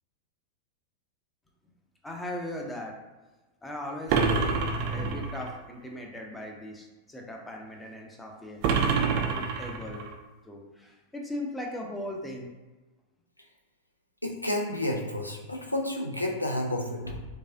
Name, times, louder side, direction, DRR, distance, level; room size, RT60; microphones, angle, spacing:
voice 1, 2.0-2.9 3.6-4.6 4.9-8.6 9.1-10.1 10.4-12.5, left 1 dB, 10° left, 0 dB, 0.7 m, -38 dB
sound 1, 4.1-5.5 8.6-10.1, right 5 dB, 45° right, 0.4 m, -27 dB
voice 2, 14.2-17.2, left 1 dB, 85° left, 1 dB, 0.5 m, -30 dB
4.7 x 2.4 x 2.7 m, 1.2 s
figure-of-eight pair, 90°, 0 cm